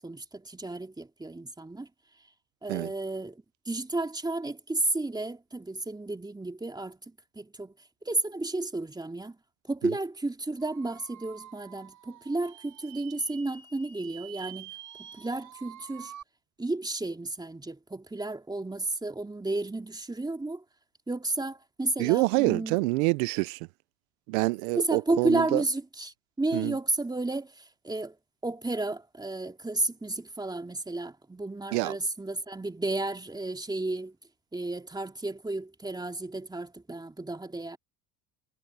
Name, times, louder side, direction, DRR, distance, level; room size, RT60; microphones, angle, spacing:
voice 1, 0.0-1.9 2.6-3.4 3.7-7.0 7.4-7.7 8.0-9.4 9.7-14.7 15.2-16.1 16.6-20.6 21.1-22.8 24.7-28.1 28.4-34.1 34.5-37.8, right 2 dB, 10° right, 2.7 m, -32 dB
sound 1, 10.6-16.2, right 10 dB, 50° right, 4.6 m, -48 dB
voice 2, 22.0-23.6 24.3-25.6 26.5-26.8 31.7-32.0, right 25 dB, 80° right, 0.8 m, -26 dB
supercardioid pair, 85°, 39 cm